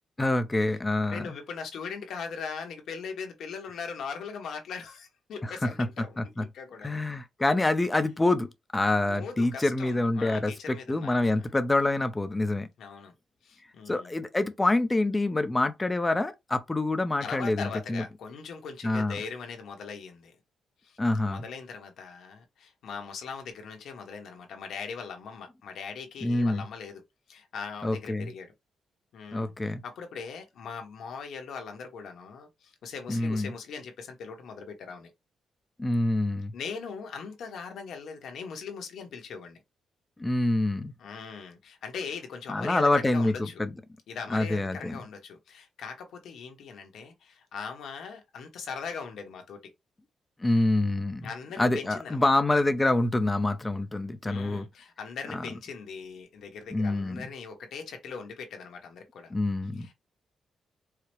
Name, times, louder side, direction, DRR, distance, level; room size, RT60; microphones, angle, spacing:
voice 1, 0.2-1.4 5.4-5.9 6.2-6.4 6.8-12.7 13.9-18.0 18.8-19.2 21.0-21.4 26.2-26.6 27.8-28.3 29.3-29.8 33.1-33.5 35.8-36.5 40.2-40.9 42.5-43.7 44.3-45.0 50.4-51.3 51.6-54.7 55.3-55.4 56.7-57.3 59.3-59.9, left 2 dB, 15° left, 0.5 m, -26 dB
voice 2, 1.1-7.0 9.1-11.5 12.8-13.1 13.4-14.2 17.2-20.4 20.8-21.0 21.3-27.0 27.3-28.5 29.1-35.1 36.5-39.6 41.0-43.6 44.1-49.7 51.2-52.3 54.2-59.3 59.8-59.9, left 5 dB, 75° left, 1.1 m, -40 dB
4.8 x 2.0 x 3.0 m
cardioid pair, 140°, 0 cm